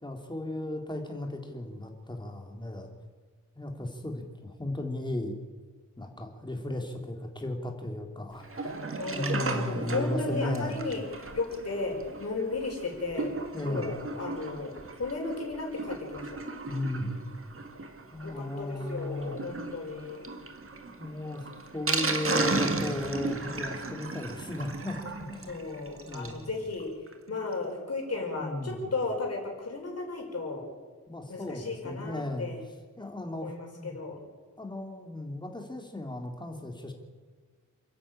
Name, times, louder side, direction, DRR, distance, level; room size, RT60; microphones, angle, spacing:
voice 1, 0.0-2.9 3.6-5.4 6.0-8.7 9.1-10.8 13.5-13.9 16.7-17.2 18.1-19.3 21.0-21.5 21.7-25.6 26.0-26.5 28.4-28.9 31.1-32.5 33.0-33.9 34.6-36.9, left 1 dB, 15° left, 3 dB, 2.9 m, -35 dB
Sink (filling or washing), 8.4-26.4 26.8-26.9 27.1-27.2 27.5-27.6, right 3 dB, 45° right, 1.8 m, -35 dB
voice 2, 9.0-13.3 13.6-16.4 18.2-20.2 25.5-26.9 27.3-30.7 31.3-32.6 33.3-34.2, left 3 dB, 50° left, 0 dB, 5.2 m, -35 dB
28.5 x 10.5 x 8.8 m, 1.5 s
wide cardioid pair, 140°, 31 cm